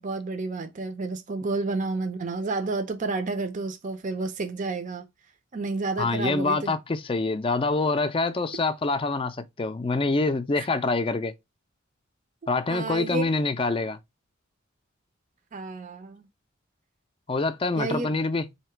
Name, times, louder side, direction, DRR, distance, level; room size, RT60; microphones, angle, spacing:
voice 1, 0.0-5.1 5.5-6.8 10.6-10.7 12.7-13.2 15.5-16.3 17.8-18.1, right 3 dB, 40° right, 0.5 m, -30 dB
voice 2, 6.0-11.3 12.5-14.0 17.3-18.5, left 3 dB, 25° left, 0.4 m, -26 dB
4.1 x 2.9 x 4.4 m
head